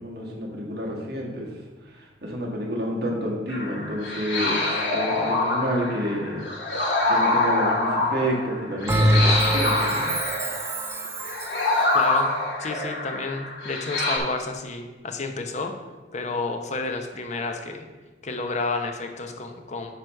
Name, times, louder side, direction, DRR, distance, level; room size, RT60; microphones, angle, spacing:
voice 1, 0.0-1.5 1.9-6.4 7.1-10.1, equal, 65° right, -2 dB, 1.6 m, -29 dB
sound 1, 3.5-14.2, left 2 dB, 75° left, 1.8 m, -25 dB
Bell, 8.9-11.7, right 1 dB, 15° right, 0.5 m, -24 dB
voice 2, 11.9-12.3 12.6-15.7 16.1-17.9 18.2-20.0, left 3 dB, 40° left, 5 dB, 0.8 m, -30 dB
9.3 x 3.1 x 6.3 m, 1.2 s
head